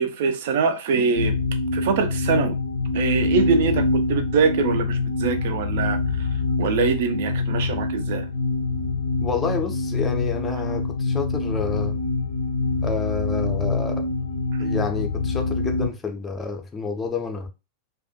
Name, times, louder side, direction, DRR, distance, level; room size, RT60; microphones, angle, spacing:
voice 1, 0.0-1.4 1.7-2.5 2.9-6.0 6.6-8.3, right 5 dB, 55° right, 0.4 m, -23 dB
sound 1, 1.2-15.9, left 3 dB, 70° left, 0.4 m, -25 dB
voice 2, 9.2-12.0 12.8-14.1 14.6-17.5, left 4 dB, 15° left, 0.5 m, -29 dB
2.3 x 2.3 x 2.6 m
figure-of-eight pair, 90°, 0 cm